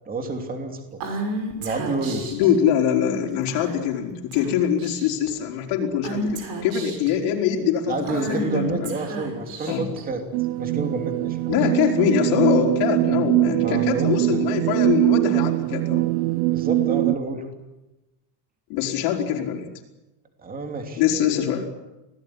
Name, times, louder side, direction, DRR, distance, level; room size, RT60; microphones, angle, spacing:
voice 1, 0.0-1.2 1.6-2.4 7.9-10.2 10.6-11.6 13.6-14.4 16.5-17.5 20.4-21.0, right 3 dB, 20° right, 5 dB, 2.9 m, -29 dB
Female speech woman speaking / Whispering, 1.0-2.5 3.5-3.9 4.3-4.5 4.8-5.3 6.0-7.1 8.0-10.0, right 2 dB, 50° right, 6.2 m, -31 dB
voice 2, 2.3-8.9 9.7-9.9 11.5-16.1 18.7-19.7 21.0-21.7, left 9 dB, 70° left, 1 dB, 4.4 m, -23 dB
sound 1, 10.3-17.1, right 19 dB, 80° right, 1.0 m, -22 dB
26.5 x 17.5 x 10.0 m, 1.0 s
cardioid pair, 175°, 44 cm